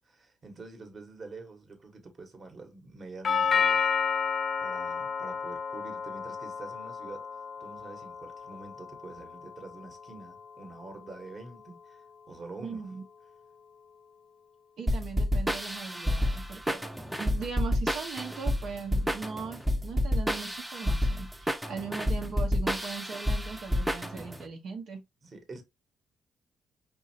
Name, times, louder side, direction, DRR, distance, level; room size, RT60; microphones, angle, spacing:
voice 1, 0.0-3.9 4.6-7.3 7.6-12.8 25.2-25.6, right 3 dB, 40° right, 1.3 m, -46 dB
Doorbell, 3.2-11.3, left 6 dB, 45° left, 0.4 m, -32 dB
voice 2, 12.6-13.0 14.8-25.0, right 5 dB, 70° right, 1.1 m, -39 dB
sound 1, 14.9-24.4, equal, 5° right, 0.6 m, -29 dB
5.2 x 2.7 x 2.8 m
cardioid pair, 90°, 0 cm